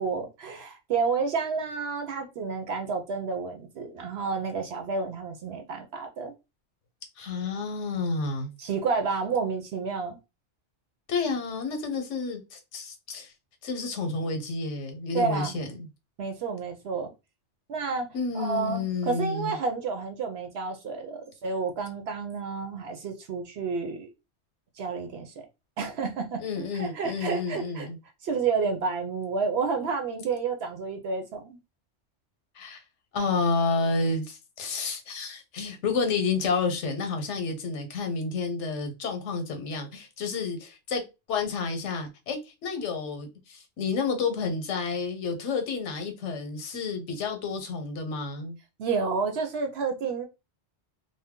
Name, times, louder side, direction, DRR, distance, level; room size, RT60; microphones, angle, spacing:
voice 1, 0.0-6.3 8.6-10.2 15.1-15.6 16.2-17.1 17.7-18.1 18.3-24.1 24.8-25.5 25.8-27.9 28.2-31.6 48.8-50.3, right 5 dB, 65° right, 0.8 m, -30 dB
voice 2, 7.2-8.5 11.1-13.3 13.6-15.9 18.1-19.6 26.4-28.0 32.6-32.8 33.1-41.0 41.3-48.6, left 4 dB, 85° left, 1.1 m, -30 dB
2.6 x 2.1 x 3.5 m
omnidirectional pair, 1.2 m